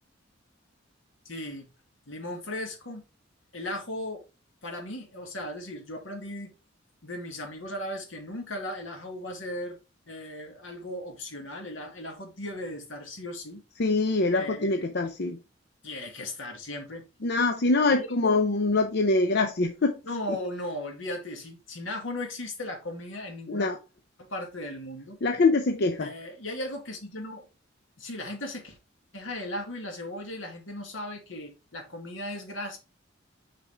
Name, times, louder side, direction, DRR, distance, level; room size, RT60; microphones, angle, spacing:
voice 1, 1.3-1.7 2.1-3.0 3.5-4.2 4.6-6.5 7.0-9.8 10.1-13.6 14.3-14.9 15.8-17.0 17.9-18.4 20.1-23.7 24.2-25.2 26.0-27.5 28.0-28.8 29.1-32.8, left 1 dB, 80° left, 2.1 m, -37 dB
voice 2, 13.8-15.4 17.2-20.0 23.5-23.8 25.2-26.1, left 3 dB, 60° left, 0.7 m, -24 dB
6.1 x 5.2 x 3.4 m
head